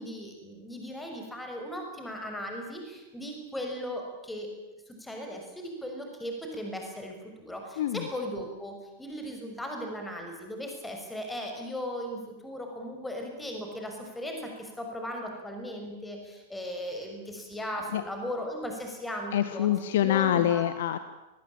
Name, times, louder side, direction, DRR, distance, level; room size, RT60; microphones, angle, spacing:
voice 1, 0.0-4.5 4.9-19.7 20.0-20.6, equal, 5° left, 2 dB, 6.2 m, -37 dB
voice 2, 7.8-8.1 17.9-18.0 19.3-21.0, left 11 dB, 55° left, 12 dB, 1.4 m, -25 dB
27.5 x 21.0 x 8.9 m, 1.0 s
figure-of-eight pair, 90°, 0 cm